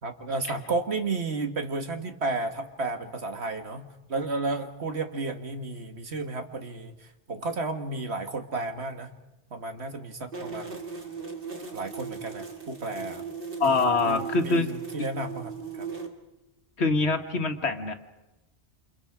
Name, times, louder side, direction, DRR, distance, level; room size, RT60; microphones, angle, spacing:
voice 1, 0.0-9.1 9.5-10.8 11.7-13.2 13.6-15.9, right 3 dB, 70° right, 6 dB, 2.0 m, -33 dB
sound 1, 10.3-16.1, right 5 dB, 55° right, 2.2 m, -38 dB
voice 2, 13.6-14.7 16.8-17.9, left 3 dB, 70° left, 7 dB, 1.8 m, -24 dB
28.5 x 27.0 x 5.0 m, 0.99 s
omnidirectional pair, 1.1 m